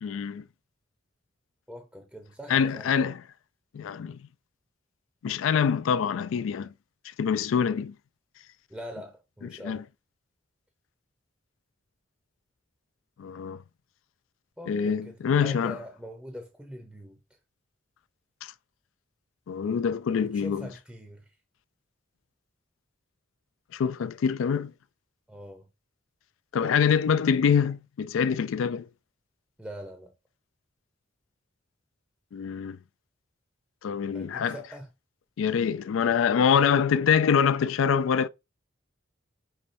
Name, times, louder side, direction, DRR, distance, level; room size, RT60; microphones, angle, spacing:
voice 1, 0.0-0.4 2.5-3.2 3.7-4.2 5.2-6.7 7.2-7.9 9.6-9.8 13.2-13.6 14.7-15.8 18.4-18.5 19.5-20.7 23.7-24.7 26.5-28.9 32.3-32.8 33.8-34.6 35.4-38.3, left 7 dB, 85° left, 0.3 m, -25 dB
voice 2, 1.7-3.1 8.7-9.8 14.6-17.2 20.1-21.2 25.3-25.7 29.6-30.1 34.1-34.9, equal, 5° right, 0.6 m, -43 dB
5.6 x 3.1 x 2.6 m
head